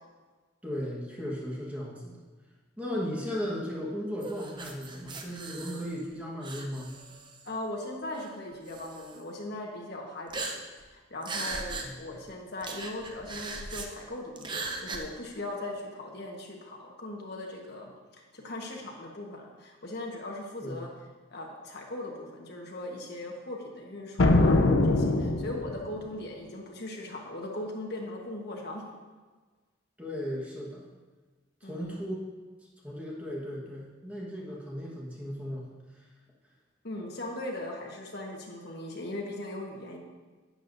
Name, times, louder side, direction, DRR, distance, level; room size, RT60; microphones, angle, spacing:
voice 1, 0.6-2.2 2.8-7.0 11.8-11.9 20.6-20.8 30.0-30.9 31.6-32.2 32.8-35.7 35.9-36.0, equal, 5° right, -4 dB, 1.4 m, -36 dB
sound 1, 4.2-6.1 6.4-7.5 8.1-8.3 8.7-9.2 10.3-10.9 11.2-11.9 12.2-12.3 12.6-13.9 14.4-15.0, right 3 dB, 25° right, 0.7 m, -38 dB
voice 2, 7.4-10.5 10.9-17.9 18.3-20.9 21.3-28.8 31.6-32.0 36.8-40.0, left 1 dB, 55° left, 0 dB, 1.3 m, -39 dB
sound 2, 24.2-25.9, left 2 dB, 85° left, 0.7 m, -22 dB
11.0 x 8.9 x 2.7 m, 1.3 s
head